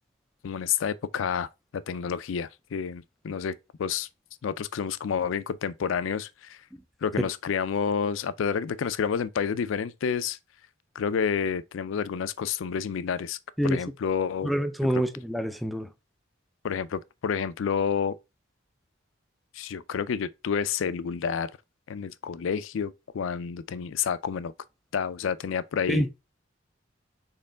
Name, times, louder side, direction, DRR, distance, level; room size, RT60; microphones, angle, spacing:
voice 1, 0.4-1.5 1.7-4.1 4.4-6.6 7.0-10.4 11.0-13.4 13.6-14.5 16.6-18.2 19.5-21.5 21.9-24.5 24.9-26.1, left 7 dB, 75° left, 0.4 m, -29 dB
voice 2, 14.4-15.9 25.9-26.1, equal, ahead, 0.3 m, -26 dB
4.4 x 3.2 x 3.7 m
head